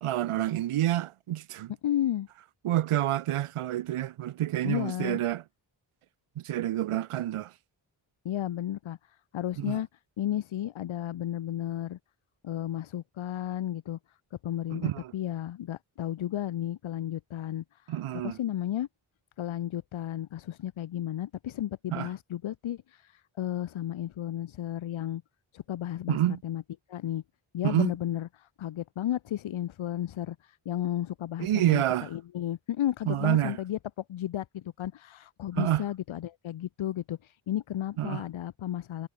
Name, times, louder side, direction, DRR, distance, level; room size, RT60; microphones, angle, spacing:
voice 1, 0.0-1.7 2.6-5.4 6.4-7.5 9.6-9.8 14.7-15.1 17.9-18.4 21.9-22.1 26.1-26.4 27.6-27.9 31.4-32.1 33.1-33.6 35.6-35.8 38.0-38.2, right 13 dB, 85° right, 0.7 m, -28 dB
voice 2, 1.8-2.3 4.6-5.2 8.2-9.0 9.3-9.9 10.2-12.0 12.4-14.0 14.4-17.6 18.2-18.9 19.4-25.2 25.5-26.2 26.4-26.6 26.9-27.2 27.5-31.8 32.1-33.8 34.1-39.1, left 12 dB, 70° left, 0.7 m, -33 dB
wide cardioid pair, 80°, 49 cm